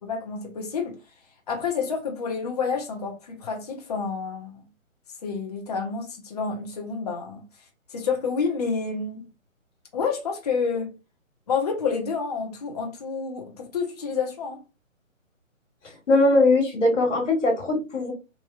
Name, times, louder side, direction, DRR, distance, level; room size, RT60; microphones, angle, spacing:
voice 1, 0.0-1.0 1.5-4.6 5.2-7.4 7.9-9.2 9.9-10.9 11.5-14.6, left 5 dB, 30° left, 0.6 m, -29 dB
voice 2, 16.1-18.1, left 2 dB, 60° left, 1.6 m, -20 dB
3.2 x 2.6 x 2.3 m
figure-of-eight pair, 150°, 40 cm